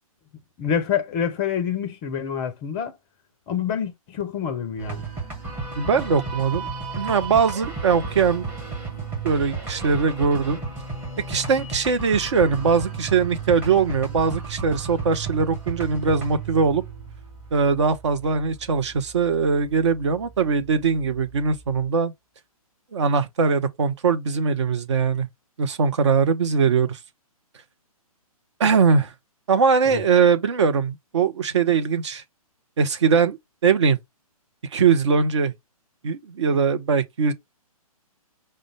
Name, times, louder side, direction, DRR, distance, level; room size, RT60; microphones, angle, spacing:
voice 1, 0.6-2.9 3.5-5.1 29.9-30.0, left 8 dB, 20° left, 0.5 m, -27 dB
sound 1, 4.8-21.9, right 4 dB, 10° right, 1.1 m, -34 dB
voice 2, 5.8-6.7 7.0-8.5 9.2-10.6 11.3-16.8 17.5-22.1 22.9-25.3 25.6-27.0 28.6-29.1 29.5-32.2 32.8-33.4 33.6-34.0 34.7-35.5 36.0-37.3, right 5 dB, 50° right, 0.7 m, -21 dB
5.0 x 2.2 x 3.2 m
figure-of-eight pair, 130°, 19 cm